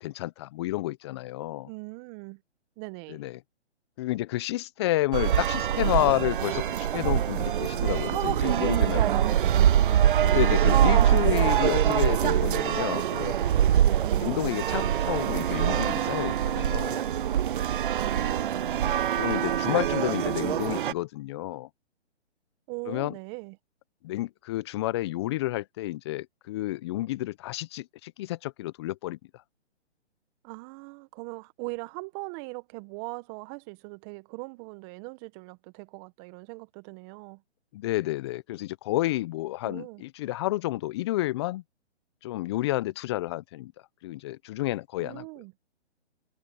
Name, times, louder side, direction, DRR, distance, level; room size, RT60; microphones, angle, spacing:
voice 1, 0.0-1.7 3.1-3.3 4.0-6.6 6.9-9.0 10.2-13.4 14.2-17.0 19.2-21.7 22.9-23.1 24.0-29.2 37.7-41.6 42.2-43.7 44.0-45.2, left 16 dB, 25° left, 0.7 m, -30 dB
voice 2, 1.6-2.4 2.8-3.2 9.0-9.9 14.0-14.5 17.9-18.6 22.7-23.6 30.4-37.4 39.6-40.0 45.0-45.5, right 28 dB, 20° right, 1.3 m, -40 dB
sound 1, 5.1-20.9, right 10 dB, 50° right, 0.5 m, -24 dB
hypercardioid pair, 140°, 34 cm